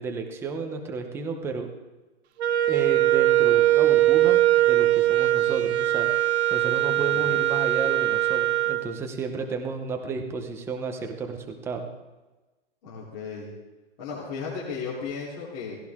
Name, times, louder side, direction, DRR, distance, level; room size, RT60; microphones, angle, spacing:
voice 1, 0.0-1.7 2.7-6.1 6.5-11.8, right 4 dB, 5° right, 3 dB, 0.8 m, -32 dB
Wind instrument woodwind instrument, 2.4-8.9, right 14 dB, 65° right, 0.9 m, -21 dB
voice 2, 12.8-13.5 14.0-15.8, left 5 dB, 35° left, -7 dB, 3.4 m, -35 dB
17.0 x 16.5 x 3.6 m, 1.2 s
hypercardioid pair, 170°, 35 cm